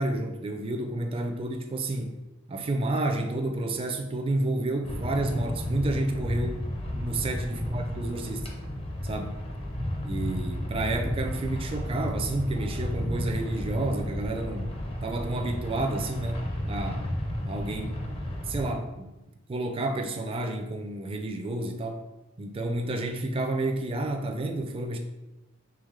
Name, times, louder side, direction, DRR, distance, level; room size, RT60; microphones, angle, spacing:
voice 1, 0.0-2.2 2.5-6.6 6.9-8.5 9.0-9.4 10.0-14.7 15.0-17.1 17.4-18.0 18.5-19.1 19.5-22.0 22.4-25.0, right 2 dB, 25° right, 4 dB, 0.4 m, -30 dB
sound 1, 4.8-18.7, left 1 dB, 25° left, 0.5 m, -32 dB
3.6 x 3.3 x 3.2 m, 1.0 s
head